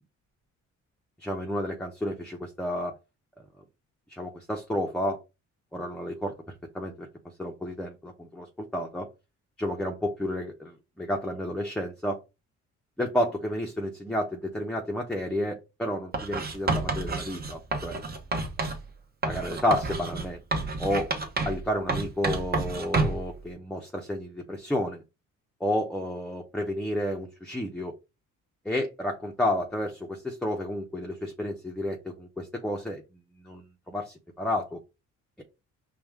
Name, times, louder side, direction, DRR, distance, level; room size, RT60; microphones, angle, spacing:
voice 1, 1.2-2.9 4.1-5.2 5.7-7.1 7.4-8.5 8.7-9.1 9.6-12.2 13.0-18.0 19.2-21.1 21.4-25.0 25.6-27.9 28.6-33.0 33.4-34.8, left 1 dB, 5° left, 1 dB, 0.7 m, -31 dB
Writing, 16.1-18.8 19.2-21.6 21.9-23.3, right 3 dB, 30° right, 0.9 m, -29 dB
4.8 x 2.3 x 3.5 m, 0.27 s
cardioid pair, 90°, 30 cm